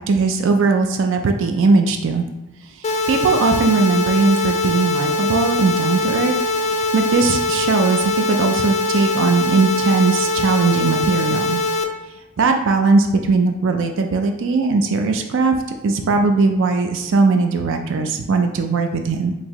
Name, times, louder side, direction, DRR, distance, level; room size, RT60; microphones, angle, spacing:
voice 1, 0.0-2.3 2.8-6.3 6.6-11.6 12.4-15.6 15.8-19.4, right 4 dB, 65° right, 5 dB, 0.4 m, -19 dB
sound 1, 2.8-11.8, left 2 dB, 35° left, 0.4 m, -22 dB
4.4 x 2.9 x 2.9 m, 0.97 s
head